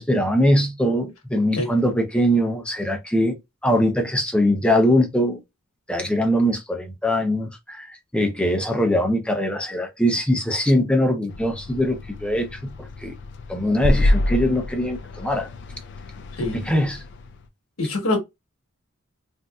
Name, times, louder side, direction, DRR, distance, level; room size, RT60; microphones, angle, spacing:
voice 1, 0.0-3.4 3.6-5.4 5.9-12.5 13.0-13.1 13.5-15.5 16.5-17.0, equal, 5° left, 0.6 m, -21 dB
sound 1, 11.3-17.5, left 1 dB, 60° left, 0.5 m, -27 dB
voice 2, 17.8-18.2, left 2 dB, 80° left, 1.2 m, -24 dB
3.8 x 2.6 x 2.3 m
head